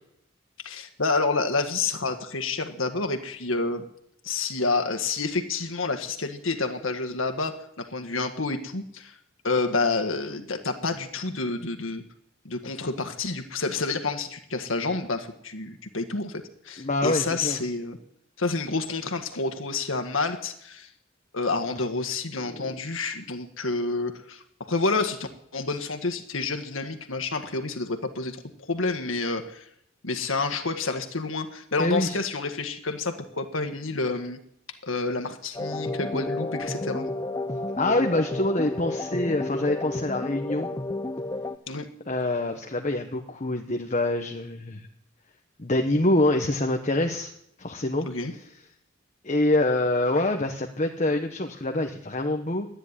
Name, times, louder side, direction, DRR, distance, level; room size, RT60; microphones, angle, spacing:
voice 1, 0.6-3.8 4.2-9.1 9.4-12.0 12.5-18.0 18.4-20.9 21.3-28.4 28.7-29.7 30.0-34.4 34.8-37.1 41.7-41.9 48.1-48.3, left 3 dB, 80° left, 7 dB, 1.8 m, -29 dB
voice 2, 16.8-17.6 31.8-32.2 37.8-40.7 42.1-44.8 45.6-47.3 47.6-48.1 49.2-52.7, left 2 dB, 35° left, 5 dB, 1.2 m, -25 dB
sound 1, 35.5-41.6, left 2 dB, 20° left, 0.7 m, -31 dB
13.5 x 10.0 x 10.0 m, 0.73 s
head